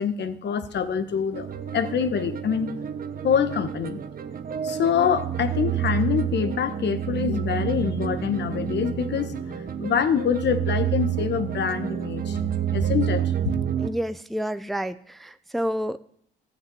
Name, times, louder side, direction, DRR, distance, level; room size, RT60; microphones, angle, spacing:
voice 1, 0.0-1.5 1.7-2.7 3.2-4.0 4.6-12.4 12.7-13.5, left 7 dB, 60° left, 11 dB, 1.3 m, -25 dB
sound 1, 1.3-13.9, right 10 dB, 45° right, 1.0 m, -29 dB
voice 2, 13.8-16.0, equal, ahead, 11 dB, 0.5 m, -29 dB
13.5 x 6.7 x 8.5 m, 0.63 s
cardioid pair, 90°, 20 cm